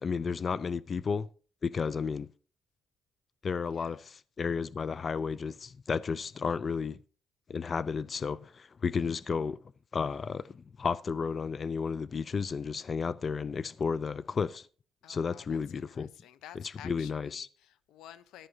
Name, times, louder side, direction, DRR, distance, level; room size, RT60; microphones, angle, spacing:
voice 1, 0.0-1.3 1.6-2.3 3.4-7.0 7.5-9.6 9.9-14.7 15.1-16.1 16.5-17.5, left 5 dB, 40° left, 0.4 m, -32 dB
voice 2, 3.7-4.1 15.0-18.5, left 11 dB, 90° left, 0.8 m, -52 dB
14.0 x 11.5 x 2.8 m
cardioid pair, 90°, 0 cm